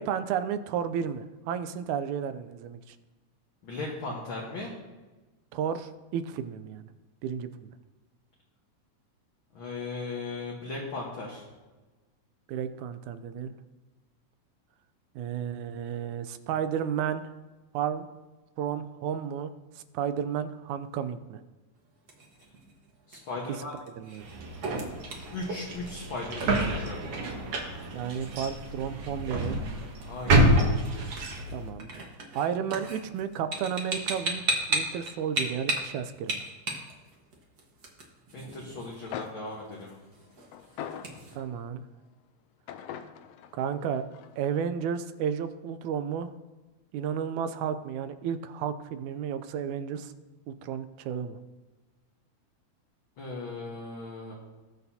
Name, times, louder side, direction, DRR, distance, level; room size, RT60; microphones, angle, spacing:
voice 1, 0.0-3.0 5.5-6.9 7.2-7.7 12.5-13.5 15.2-17.2 17.7-18.1 18.6-21.4 24.0-24.3 27.9-29.6 31.5-31.9 32.3-34.4 34.7-36.4 41.4-41.8 43.5-44.0 44.4-46.3 46.9-50.1 50.5-51.4, right 8 dB, 85° right, 11 dB, 2.0 m, -32 dB
voice 2, 3.6-4.8 9.5-11.5 23.1-23.7 25.3-27.2 30.0-30.6 38.3-40.0 53.2-54.3, left 3 dB, 50° left, -3 dB, 1.8 m, -37 dB
sound 1, 21.8-41.4, right 2 dB, 45° right, 1.4 m, -38 dB
sound 2, 24.2-31.7, right 1 dB, 65° right, 2.6 m, -28 dB
sound 3, 38.8-38.9 39.1-41.7 42.7-44.6, left 9 dB, 80° left, 1.5 m, -42 dB
19.5 x 6.6 x 2.8 m, 1.2 s
omnidirectional pair, 3.3 m